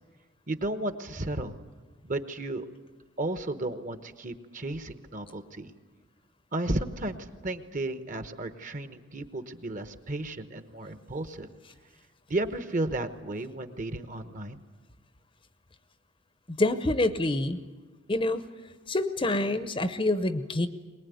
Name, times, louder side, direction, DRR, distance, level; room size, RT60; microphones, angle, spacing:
voice 1, 0.5-1.6 2.0-2.7 3.2-5.7 6.5-11.5 12.3-14.6, right 2 dB, 40° right, 10 dB, 1.1 m, -33 dB
voice 2, 16.5-17.6 18.1-18.4 18.9-20.7, left 2 dB, 25° left, 11 dB, 0.8 m, -26 dB
22.5 x 20.0 x 9.4 m, 1.4 s
head